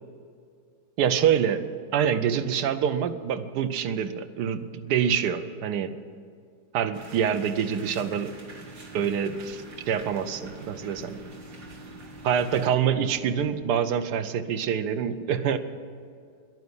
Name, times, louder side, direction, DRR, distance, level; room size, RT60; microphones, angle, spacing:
voice 1, 1.0-1.6 1.9-5.9 6.7-8.3 8.9-11.2 12.2-15.6, right 8 dB, 70° right, 10 dB, 1.3 m, -26 dB
sound 1, 6.9-12.7, right 3 dB, 55° right, 2.1 m, -46 dB
sound 2, 7.6-13.8, equal, 65° left, 3.6 m, -48 dB
11.0 x 9.4 x 9.7 m, 2.3 s
omnidirectional pair, 1.9 m